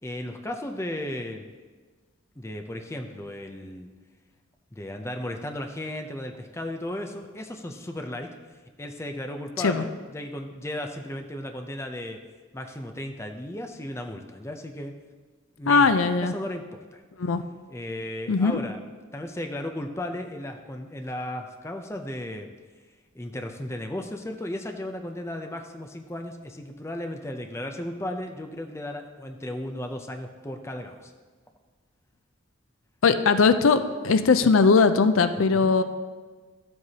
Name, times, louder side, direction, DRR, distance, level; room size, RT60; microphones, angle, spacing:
voice 1, 0.0-1.5 2.4-3.9 4.7-8.3 8.8-12.2 12.5-15.0 15.6-17.0 17.7-18.8 19.1-22.5 23.1-31.1 35.6-35.7, left 1 dB, 15° left, 5 dB, 0.5 m, -35 dB
voice 2, 15.7-16.3 17.2-17.4 18.3-18.6 33.0-35.8, left 4 dB, 80° left, 10 dB, 0.5 m, -20 dB
12.5 x 7.7 x 2.8 m, 1.4 s
head